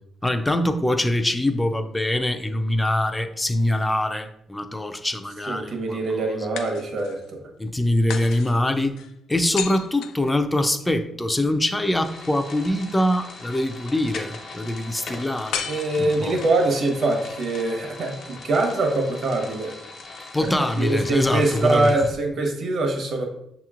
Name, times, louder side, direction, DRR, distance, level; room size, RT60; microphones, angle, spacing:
voice 1, 0.2-6.0 6.3-6.4 7.6-9.0 9.3-15.7 16.0-16.3 20.3-21.9, left 1 dB, 10° left, 0.4 m, -23 dB
sound 1, 3.5-4.5 6.6-7.3 8.1-10.9 15.5-16.6, left 8 dB, 90° left, 0.3 m, -35 dB
voice 2, 5.5-7.4 15.6-19.7 20.8-23.2, right 2 dB, 60° right, 1.0 m, -23 dB
sound 2, 12.0-22.1, left 3 dB, 70° left, 1.0 m, -40 dB
6.4 x 2.9 x 2.4 m
cardioid pair, 90°, 0 cm